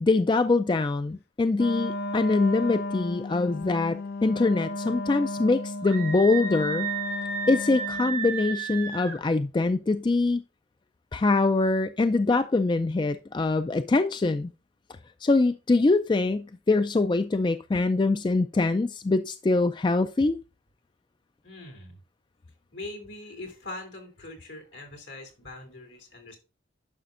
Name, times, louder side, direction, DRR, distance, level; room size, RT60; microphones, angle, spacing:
voice 1, 0.0-6.9 7.5-10.4 11.1-14.5 15.2-20.4, left 3 dB, 25° left, 0.3 m, -24 dB
Wind instrument woodwind instrument, 1.5-8.2, left 2 dB, 55° left, 0.6 m, -34 dB
Screaming, 5.8-9.2, right 4 dB, 50° right, 4.1 m, -33 dB
voice 2, 21.4-22.0 22.7-26.4, left 2 dB, 70° left, 3.1 m, -42 dB
11.0 x 6.0 x 2.5 m
head